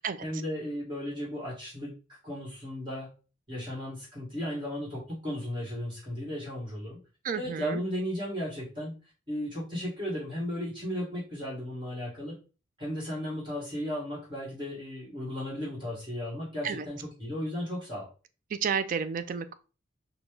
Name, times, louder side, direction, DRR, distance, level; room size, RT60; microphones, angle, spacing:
voice 1, 0.2-1.9 2.2-3.1 3.5-7.0 7.3-8.9 9.3-12.4 12.8-18.1, equal, 25° right, -5 dB, 1.6 m, -35 dB
voice 2, 7.2-7.8 16.6-16.9 18.5-19.6, right 6 dB, 45° right, 11 dB, 0.3 m, -31 dB
4.2 x 2.2 x 3.2 m, 0.34 s
head